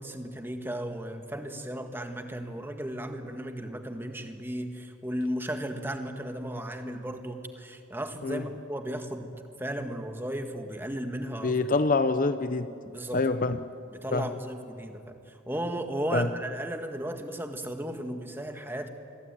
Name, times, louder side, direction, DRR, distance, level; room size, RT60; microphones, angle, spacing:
voice 1, 0.0-9.3 9.6-11.6 12.8-13.2 13.9-18.9, right 1 dB, 10° right, 5 dB, 1.6 m, -35 dB
voice 2, 11.4-12.7 13.1-13.6 14.1-14.3 16.1-16.3, left 3 dB, 40° left, 11 dB, 0.7 m, -25 dB
26.5 x 22.5 x 9.0 m, 2.6 s
head